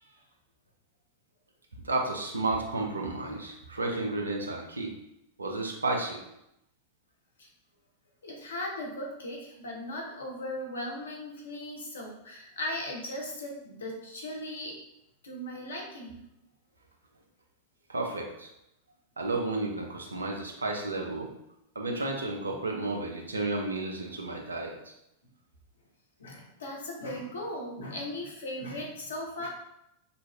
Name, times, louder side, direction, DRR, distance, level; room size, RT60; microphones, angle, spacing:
voice 1, 1.8-4.9 5.4-6.2 17.9-18.5 19.2-21.3 21.8-24.7, right 2 dB, 75° right, 0 dB, 0.5 m, -32 dB
voice 2, 8.2-14.7 15.2-16.2 22.5-22.6 26.2-29.5, left 1 dB, 65° left, 0 dB, 0.7 m, -38 dB
2.7 x 2.4 x 3.0 m, 0.83 s
figure-of-eight pair, 90°, 0 cm